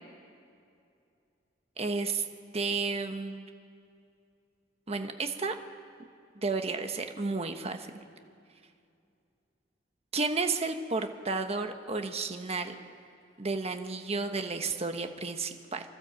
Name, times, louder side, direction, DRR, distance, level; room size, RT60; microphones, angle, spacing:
voice 1, 1.8-2.3 2.5-3.4 4.9-5.5 6.4-7.9 10.1-12.8 13.4-15.8, right 3 dB, 35° right, 6 dB, 1.1 m, -32 dB
29.0 x 12.5 x 7.7 m, 2.4 s
head